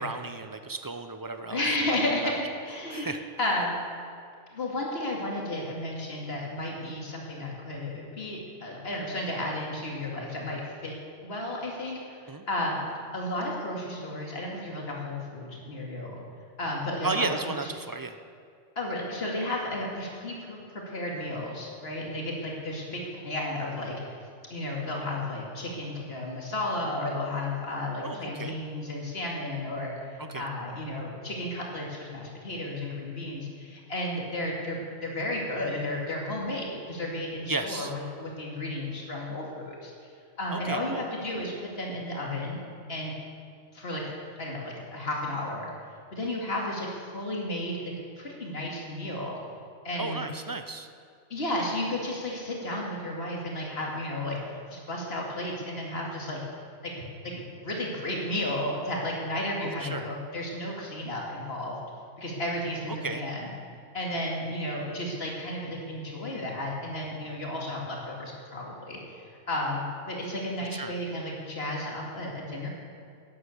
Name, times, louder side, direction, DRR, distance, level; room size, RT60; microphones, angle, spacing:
voice 1, 0.0-1.6 2.2-2.3 2.9-3.2 6.8-7.0 12.3-12.4 17.0-18.2 28.0-28.5 30.2-30.4 37.5-37.9 40.5-41.0 50.0-50.9 59.8-60.1 63.0-63.3 70.7-70.9, right 3 dB, 30° right, 8 dB, 0.4 m, -34 dB
voice 2, 1.5-3.1 3.4-3.7 4.5-10.9 11.2-12.2 12.5-12.8 13.1-16.2 16.6-17.3 17.6-17.7 18.8-24.2 24.5-39.9 40.4-42.6 42.9-43.1 43.7-44.1 44.4-45.7 46.1-47.8 48.2-49.4 49.8-50.3 51.3-56.4 56.8-57.0 57.3-61.8 62.2-63.5 63.9-69.2 69.5-72.7, left 1 dB, 55° left, -2 dB, 2.6 m, -33 dB
12.0 x 10.0 x 7.1 m, 2.2 s
omnidirectional pair, 1.3 m